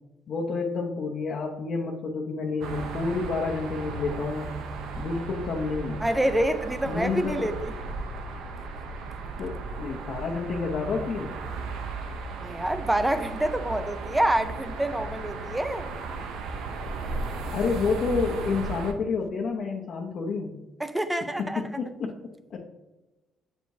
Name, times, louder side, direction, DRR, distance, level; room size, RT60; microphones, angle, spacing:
voice 1, 0.3-4.5 5.0-6.0 6.9-7.5 9.4-11.3 17.5-20.6 21.4-22.2 22.5-22.7, left 4 dB, 55° left, 0.7 m, -29 dB
sound 1, 2.6-18.9, right 3 dB, 85° right, 0.7 m, -35 dB
voice 2, 6.0-7.7 12.4-15.9 20.8-21.6, right 1 dB, 10° right, 0.5 m, -27 dB
7.8 x 4.6 x 2.7 m
cardioid pair, 125°, 0 cm